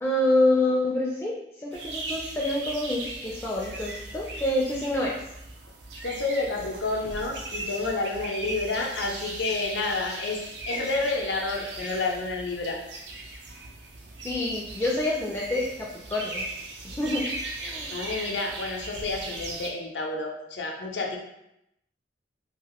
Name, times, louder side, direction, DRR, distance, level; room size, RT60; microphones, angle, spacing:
voice 1, 0.0-1.3 1.6-5.2 14.2-16.5 16.8-17.2 17.6-17.9, left 1 dB, 15° left, -4 dB, 0.3 m, -27 dB
sound 1, 1.7-19.7, right 2 dB, 75° right, 0.5 m, -38 dB
voice 2, 6.0-12.8 17.9-21.2, left 3 dB, 80° left, 1 dB, 0.6 m, -30 dB
2.9 x 2.3 x 2.9 m, 0.81 s
head